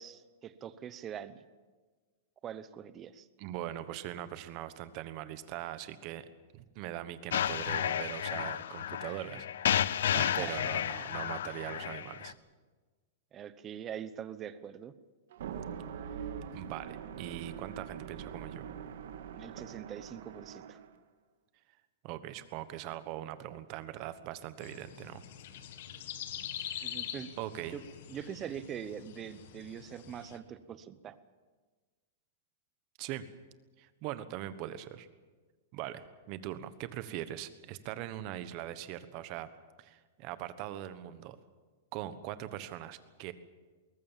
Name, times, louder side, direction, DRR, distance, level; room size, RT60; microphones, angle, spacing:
voice 1, 0.0-1.4 2.4-3.3 10.1-10.7 13.3-14.9 19.3-20.8 26.8-27.3 27.7-27.8 28.1-31.2, right 9 dB, 20° right, 14 dB, 0.8 m, -43 dB
voice 2, 3.4-6.2 6.5-10.0 10.3-12.3 16.2-18.6 22.0-25.2 26.6-27.0 27.4-27.8 33.0-33.2 33.8-35.1 35.7-39.5 39.8-41.4 41.9-43.3, right 13 dB, 35° right, 13 dB, 1.2 m, -41 dB
sound 1, 7.3-12.3, left 10 dB, 75° left, 0.6 m, -32 dB
sound 2, 15.3-20.9, right 7 dB, 70° right, 1.8 m, -43 dB
sound 3, 24.6-30.4, left 10 dB, 55° left, 1.8 m, -44 dB
21.5 x 19.0 x 7.4 m, 1.4 s
supercardioid pair, 165°, 0 cm